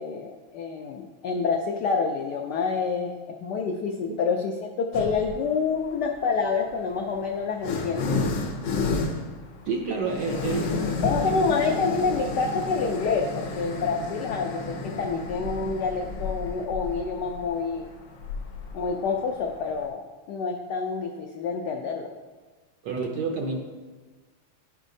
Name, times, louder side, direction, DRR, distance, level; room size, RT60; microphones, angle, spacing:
voice 1, 0.0-3.2 3.4-8.1 11.0-17.9 18.7-20.0 20.3-22.1, left 5 dB, 90° left, 3 dB, 0.9 m, -27 dB
sound 1, 4.9-5.4 6.4-19.9, left 3 dB, 65° left, 1.2 m, -32 dB
voice 2, 9.7-10.8 22.8-23.6, right 4 dB, 75° right, 2 dB, 1.0 m, -28 dB
11.0 x 5.3 x 2.6 m, 1.3 s
omnidirectional pair, 2.4 m